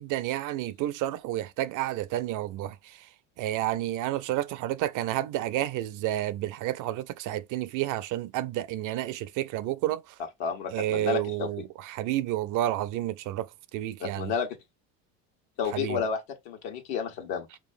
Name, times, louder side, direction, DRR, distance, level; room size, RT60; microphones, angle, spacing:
voice 1, 0.0-3.0 3.4-10.1 10.7-14.3 15.7-16.0, right 14 dB, 55° right, 0.5 m, -30 dB
voice 2, 10.4-11.5 14.0-14.5 15.6-17.5, left 6 dB, 80° left, 1.3 m, -31 dB
4.6 x 3.0 x 2.6 m
supercardioid pair, 95°, 37 cm